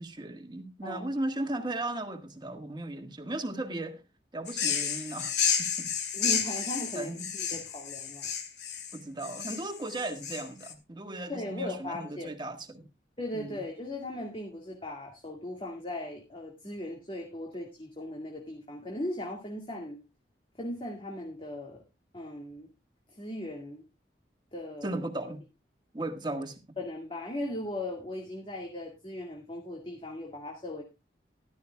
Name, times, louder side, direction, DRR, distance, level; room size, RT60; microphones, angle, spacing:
voice 1, 0.0-4.0 4.3-5.9 6.9-7.3 8.9-12.9 13.3-13.6 24.8-25.4 25.9-26.8, right 2 dB, 25° right, 1.6 m, -36 dB
sound 1, 4.5-10.7, left 7 dB, 75° left, 2.1 m, -31 dB
voice 2, 6.1-8.3 11.3-12.3 13.2-20.0 20.6-21.8 22.1-22.7 23.1-23.8 24.5-24.9 26.8-30.8, left 1 dB, 30° left, 2.1 m, -38 dB
14.5 x 12.5 x 2.3 m
head